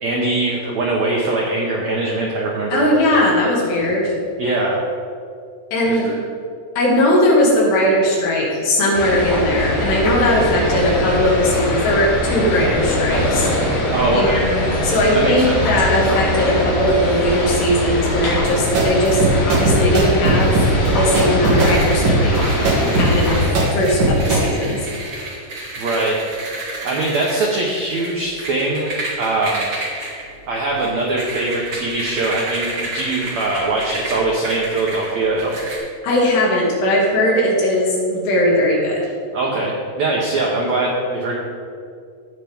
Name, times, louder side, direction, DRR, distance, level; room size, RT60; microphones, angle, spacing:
voice 1, 0.0-2.9 4.4-4.8 5.8-6.2 13.9-14.4 15.1-15.7 25.8-26.2 26.8-28.9 29.2-29.7 30.5-35.6 39.3-41.4, right 2 dB, 80° right, -3 dB, 1.6 m, -21 dB
voice 2, 2.7-4.1 5.7-6.1 6.8-13.5 14.1-22.4 22.9-24.8 36.0-39.0, left 1 dB, 85° left, -3 dB, 4.2 m, -18 dB
sound 1, 8.9-23.5, left 1 dB, 55° left, 4.3 m, -21 dB
sound 2, 18.3-24.4, right 2 dB, 60° right, 3.6 m, -18 dB
sound 3, 21.6-35.8, right 2 dB, 40° right, 2.3 m, -31 dB
17.5 x 5.9 x 3.6 m, 2.3 s
omnidirectional pair, 4.7 m